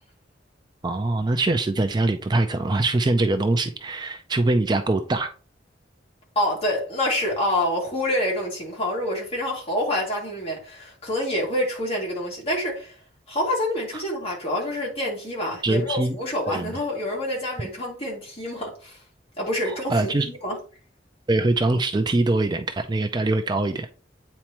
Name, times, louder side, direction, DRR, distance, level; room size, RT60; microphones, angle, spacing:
voice 1, 0.8-5.3 13.9-14.0 15.6-16.2 16.5-16.7 19.7-20.3 21.3-23.9, right 2 dB, 25° right, 0.4 m, -23 dB
voice 2, 6.4-12.9 13.3-19.0 19.4-20.6, left 1 dB, 35° left, 2.4 m, -27 dB
8.6 x 4.3 x 3.0 m
head